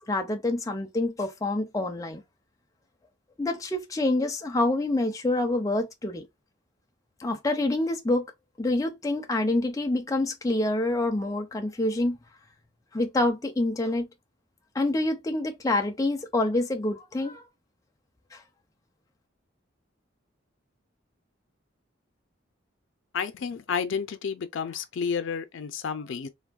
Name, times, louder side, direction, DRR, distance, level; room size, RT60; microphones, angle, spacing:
voice 1, 0.0-2.2 3.4-6.3 7.2-8.3 8.6-12.2 12.9-14.1 14.7-17.4 18.3-18.4, left 2 dB, 20° left, 0.5 m, -27 dB
voice 2, 23.1-26.3, left 6 dB, 80° left, 0.4 m, -31 dB
3.4 x 2.2 x 2.3 m
head